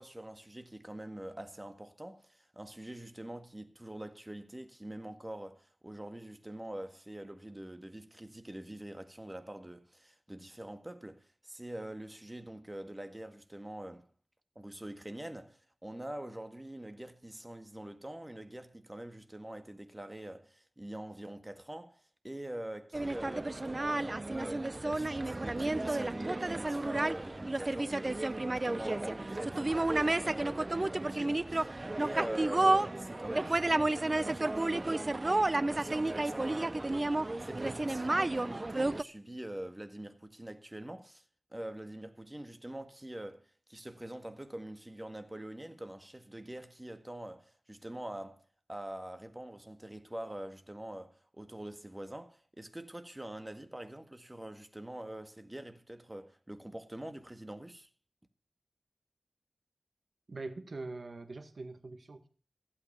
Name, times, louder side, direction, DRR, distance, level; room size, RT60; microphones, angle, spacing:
voice 1, 0.0-14.1 14.6-35.1 35.7-41.2 41.5-57.9, right 1 dB, 20° right, 1.8 m, -44 dB
sound 1, 22.9-39.0, right 2 dB, 35° right, 0.6 m, -31 dB
voice 2, 60.3-62.3, right 3 dB, 65° right, 1.9 m, -43 dB
16.0 x 8.3 x 7.0 m
wide cardioid pair, 65°, 0 cm